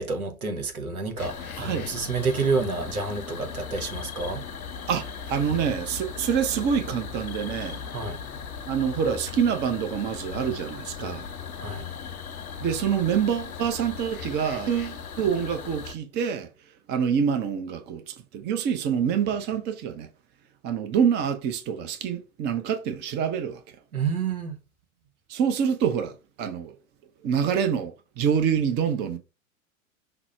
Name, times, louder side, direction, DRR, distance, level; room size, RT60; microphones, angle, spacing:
voice 1, 0.0-4.4 7.9-8.2 11.6-11.8 23.9-24.6, right 4 dB, 90° right, 1.2 m, -29 dB
sound 1, 1.2-15.9, left 6 dB, 90° left, 0.8 m, -37 dB
voice 2, 1.6-1.9 4.9-7.8 8.7-11.3 12.6-16.5 16.9-20.1 20.6-23.6 25.3-26.8 27.2-29.2, right 7 dB, 25° right, 0.6 m, -26 dB
5.9 x 2.0 x 4.2 m
hypercardioid pair, 105°, 42 cm